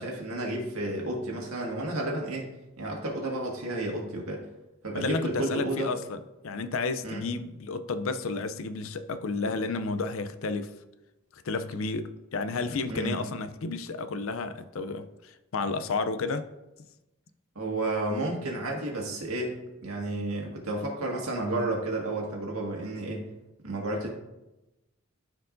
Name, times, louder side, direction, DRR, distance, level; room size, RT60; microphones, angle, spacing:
voice 1, 0.0-2.5 2.8-4.5 4.8-5.9 7.0-7.2 12.9-13.2 17.6-23.3 23.6-24.1, right 2 dB, 80° right, 1.7 m, -31 dB
voice 2, 4.9-6.2 6.4-10.7 11.3-16.5, left 3 dB, 65° left, 0.5 m, -31 dB
13.0 x 4.5 x 2.6 m
head